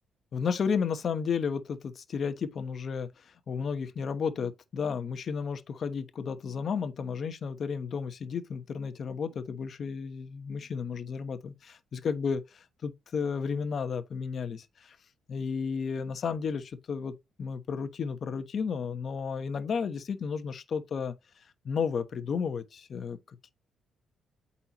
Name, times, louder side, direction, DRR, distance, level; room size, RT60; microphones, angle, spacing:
voice 1, 0.3-15.0 15.3-21.1 21.6-23.2, left 6 dB, 50° left, 1.0 m, -33 dB
8.5 x 4.3 x 3.0 m
cardioid pair, 90°, 0 cm